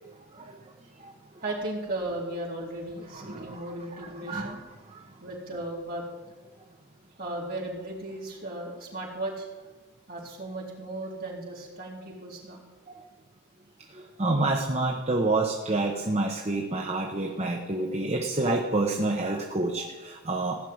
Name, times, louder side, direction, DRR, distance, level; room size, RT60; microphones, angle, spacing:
voice 1, 1.4-4.6 5.2-6.0 7.2-9.5 10.1-12.6, right 1 dB, 45° right, -3 dB, 3.9 m, -36 dB
voice 2, 3.1-3.6 4.0-4.6 4.9-5.1 12.9-13.0 13.9-20.6, right 2 dB, 30° right, 2 dB, 1.0 m, -28 dB
17.0 x 6.5 x 9.4 m, 1.3 s
head